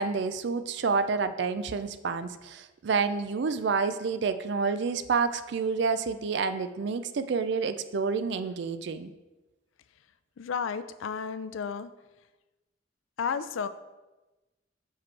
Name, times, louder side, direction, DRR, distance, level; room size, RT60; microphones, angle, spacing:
voice 1, 0.0-9.1, right 5 dB, 60° right, 11 dB, 0.4 m, -29 dB
voice 2, 10.4-11.9 13.2-13.7, left 6 dB, 80° left, 13 dB, 0.4 m, -32 dB
5.9 x 5.0 x 4.6 m, 1.1 s
head